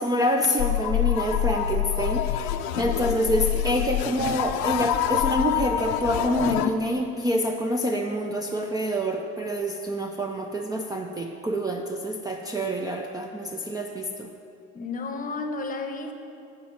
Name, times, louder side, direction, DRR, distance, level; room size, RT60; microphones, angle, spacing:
voice 1, 0.0-14.3, equal, 10° right, 2 dB, 0.4 m, -27 dB
sound 1, 0.6-6.7, left 11 dB, 80° left, 0.6 m, -26 dB
voice 2, 14.7-16.1, left 3 dB, 25° left, 5 dB, 0.9 m, -32 dB
8.6 x 5.1 x 7.3 m, 2.6 s
cardioid pair, 110°, 31 cm